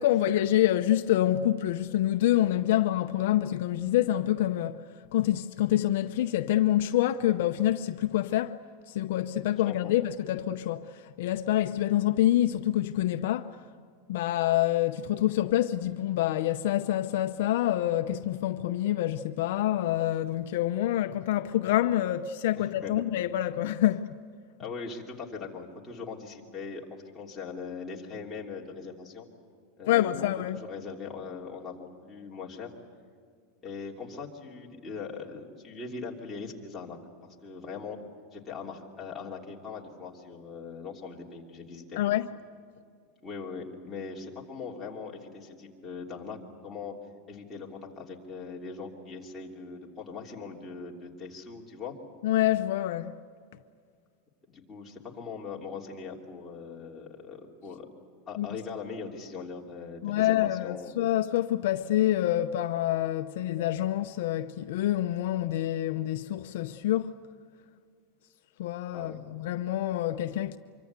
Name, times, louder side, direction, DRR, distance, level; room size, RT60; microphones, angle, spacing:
voice 1, 0.0-4.8 5.1-8.6 8.9-13.6 14.1-24.1 29.9-30.6 42.0-42.3 52.2-53.2 58.4-58.6 60.0-67.1 68.6-70.6, left 13 dB, 65° left, 0.7 m, -27 dB
voice 2, 22.6-23.0 24.6-29.3 29.8-32.7 33.6-38.0 38.3-42.0 43.2-46.9 47.3-51.9 54.5-57.9 58.3-60.9 68.9-69.2, left 5 dB, 10° left, 3.1 m, -41 dB
25.5 x 24.0 x 8.3 m
supercardioid pair, 165°, 0 cm